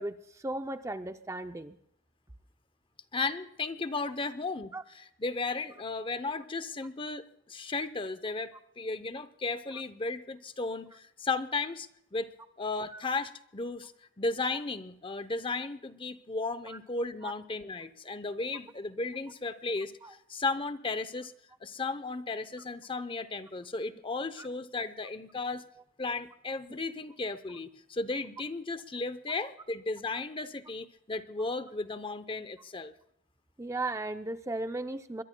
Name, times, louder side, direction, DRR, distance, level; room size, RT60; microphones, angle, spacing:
voice 1, 0.0-1.8 4.7-4.8 12.9-13.0 16.7-16.8 17.2-17.3 20.0-20.1 24.4-24.5 33.6-35.2, right 2 dB, 15° right, 8 dB, 0.5 m, -36 dB
voice 2, 3.1-12.3 12.6-13.9 14.2-21.3 21.6-25.6 26.0-32.9, left 3 dB, 25° left, 13 dB, 0.7 m, -35 dB
23.0 x 21.5 x 2.2 m, 0.72 s
head